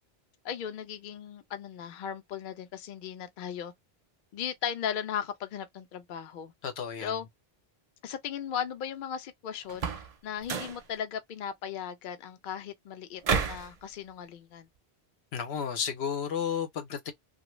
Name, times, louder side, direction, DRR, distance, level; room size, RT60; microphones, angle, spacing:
voice 1, 0.4-3.7 4.3-6.5 7.0-7.3 8.0-9.9 10.2-14.7, left 8 dB, 60° left, 0.7 m, -37 dB
voice 2, 6.6-7.1 15.3-17.1, left 7 dB, 85° left, 0.9 m, -32 dB
sound 1, 9.7-10.1 10.4-10.8 13.2-13.7, right 5 dB, 50° right, 0.5 m, -30 dB
2.6 x 2.2 x 3.0 m
omnidirectional pair, 1.1 m